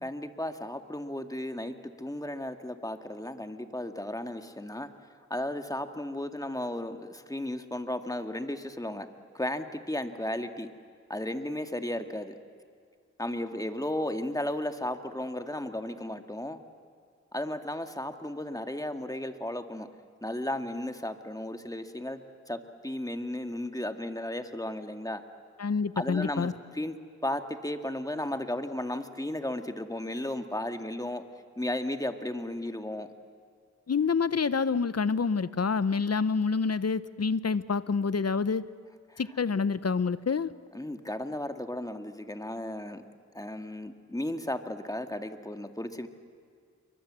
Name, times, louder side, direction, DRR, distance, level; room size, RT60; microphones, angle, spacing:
voice 1, 0.0-4.9 5.3-9.1 9.3-10.7 11.1-12.4 13.2-16.6 17.3-19.9 20.2-22.2 22.5-25.2 26.0-27.0 27.2-31.2 31.6-33.1 39.1-39.2 40.7-43.0 43.3-46.1, left 1 dB, 10° left, 6 dB, 2.0 m, -34 dB
voice 2, 25.6-26.5 33.9-38.6 39.2-40.5, left 5 dB, 60° left, 15 dB, 0.9 m, -27 dB
28.5 x 23.5 x 7.6 m, 2.2 s
cardioid pair, 45°, 29 cm